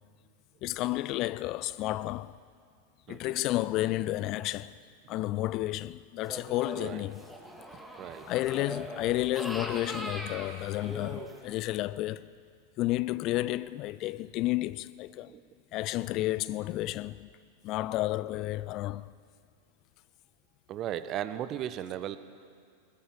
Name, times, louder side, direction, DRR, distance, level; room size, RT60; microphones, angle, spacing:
voice 1, 0.6-2.4 3.1-4.7 5.1-7.2 8.3-12.3 12.8-15.3 15.7-17.3 17.6-19.1, left 16 dB, 40° left, 0.4 m, -31 dB
sound 1, 6.2-11.6, equal, 5° right, 2.5 m, -41 dB
voice 2, 20.7-22.2, right 11 dB, 35° right, 1.1 m, -36 dB
20.5 x 19.5 x 7.2 m
figure-of-eight pair, 90°, 0 cm